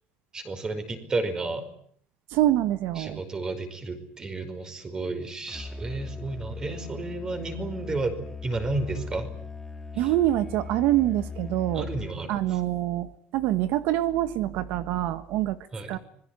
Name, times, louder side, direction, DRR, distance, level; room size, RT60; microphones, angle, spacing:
voice 1, 0.3-1.7 3.0-9.3 9.9-10.1 11.7-12.6 15.7-16.0, right 3 dB, 20° right, 9 dB, 5.2 m, -32 dB
voice 2, 2.3-3.2 10.0-11.9 12.3-15.6 15.9-16.0, right 14 dB, 75° right, 12 dB, 1.4 m, -25 dB
Musical instrument, 5.5-12.3, left 4 dB, 5° left, 1.9 m, -39 dB
25.5 x 22.0 x 9.8 m, 0.62 s
cardioid pair, 155°, 3 cm